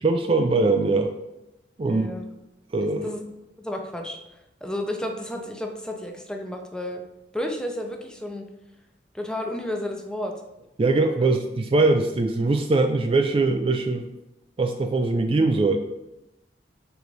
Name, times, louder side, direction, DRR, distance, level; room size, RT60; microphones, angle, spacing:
voice 1, 0.0-1.1 1.8-2.1 2.7-3.1 10.8-14.1 14.6-15.8, right 3 dB, 30° right, 5 dB, 0.4 m, -22 dB
voice 2, 1.8-2.3 3.0-3.2 3.6-4.2 4.6-7.0 7.3-8.5 9.1-10.3 11.2-11.3, left 1 dB, 5° left, 3 dB, 0.6 m, -32 dB
4.7 x 3.9 x 5.2 m, 0.91 s
head